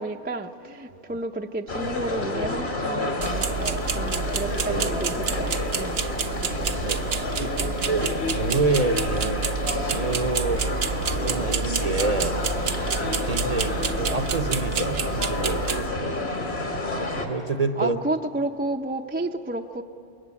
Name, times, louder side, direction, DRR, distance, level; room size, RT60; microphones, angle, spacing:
voice 1, 0.0-6.0 6.3-6.8 7.5-7.8 17.7-19.8, right 2 dB, 10° right, 5 dB, 0.6 m, -31 dB
sound 1, 1.7-17.3, left 2 dB, 65° left, 2.7 m, -29 dB
sound 2, 3.2-15.9, right 6 dB, 65° right, 1.0 m, -29 dB
voice 2, 6.8-9.5 9.8-12.4 13.0-16.1 16.9-18.0, right 3 dB, 40° right, 9 dB, 0.9 m, -28 dB
26.5 x 22.0 x 8.4 m, 2.8 s
omnidirectional pair, 1.1 m